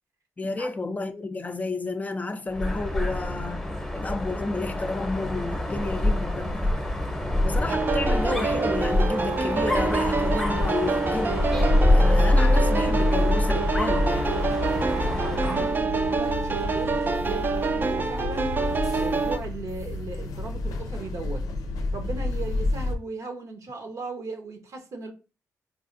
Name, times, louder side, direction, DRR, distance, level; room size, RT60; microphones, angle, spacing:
voice 1, 0.4-3.7 3.9-6.8 7.4-11.5 11.9-14.5, left 3 dB, 25° left, 0.4 m, -31 dB
Dog, 2.5-15.8, left 1 dB, 5° left, 0.8 m, -25 dB
sound 1, 7.7-19.4, right 4 dB, 35° right, 0.4 m, -27 dB
sound 2, 11.5-23.0, left 2 dB, 90° left, 0.5 m, -32 dB
voice 2, 14.6-18.6 18.9-21.4 21.9-25.1, right 4 dB, 65° right, 0.8 m, -37 dB
4.6 x 2.4 x 2.5 m
cardioid pair, 90°, 6 cm